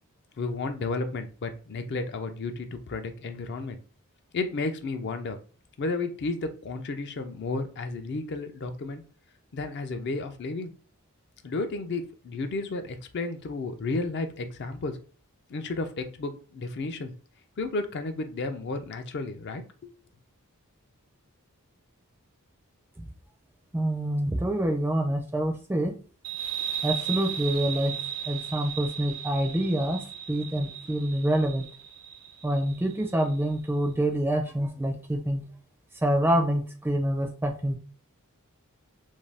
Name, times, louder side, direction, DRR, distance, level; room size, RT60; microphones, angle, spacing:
voice 1, 0.4-3.8 4.3-5.4 5.8-9.0 9.5-10.7 11.4-15.0 15.5-17.1 17.6-19.9, left 3 dB, 50° left, 7 dB, 0.4 m, -32 dB
voice 2, 23.7-25.9 26.8-27.9 28.3-30.0 30.3-31.7 32.4-35.5 36.0-37.7, right 1 dB, 10° right, 4 dB, 0.4 m, -26 dB
sound 1, 26.2-33.4, right 9 dB, 75° right, 0.6 m, -36 dB
2.6 x 2.2 x 3.2 m, 0.40 s
head